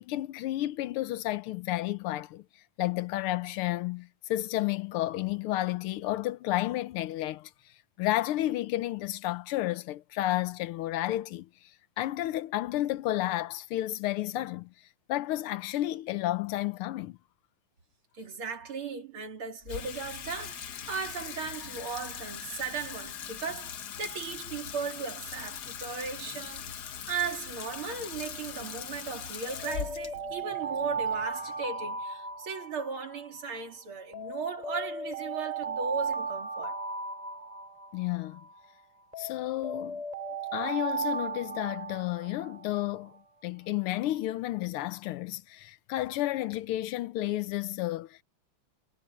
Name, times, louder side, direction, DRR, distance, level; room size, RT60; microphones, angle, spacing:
voice 1, 0.0-2.5 2.8-7.5 8.0-11.7 12.0-14.7 15.1-17.2 37.9-38.4 39.2-40.0 40.5-48.2, left 15 dB, 85° left, 1.6 m, -31 dB
voice 2, 18.1-36.8, right 5 dB, 75° right, 3.4 m, -37 dB
Water tap faucet / Sink (filling or washing), 19.6-32.0, left 8 dB, 55° left, 1.5 m, -41 dB
Alarm, 29.4-33.6 34.1-38.6 39.1-42.9, right 4 dB, 15° right, 3.1 m, -36 dB
omnidirectional pair, 2.4 m